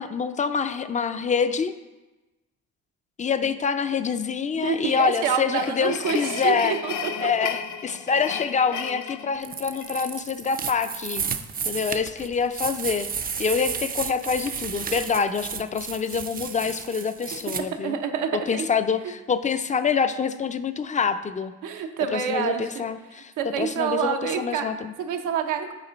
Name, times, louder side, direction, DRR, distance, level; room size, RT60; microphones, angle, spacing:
voice 1, 0.0-1.7 3.2-6.8 7.2-11.2 11.7-13.1 13.4-18.0 18.3-21.5 22.1-24.9, left 6 dB, 25° left, 11 dB, 0.4 m, -26 dB
sound 1, 4.6-10.1, left 6 dB, 75° left, 0.6 m, -34 dB
voice 2, 4.6-7.1 17.8-18.7 21.6-22.8 23.4-24.7 25.0-25.7, right 7 dB, 85° right, 5 dB, 0.7 m, -27 dB
sound 2, 9.4-17.6, right 6 dB, 30° right, 0.4 m, -33 dB
8.2 x 3.8 x 5.0 m, 1.1 s
cardioid pair, 90°, 30 cm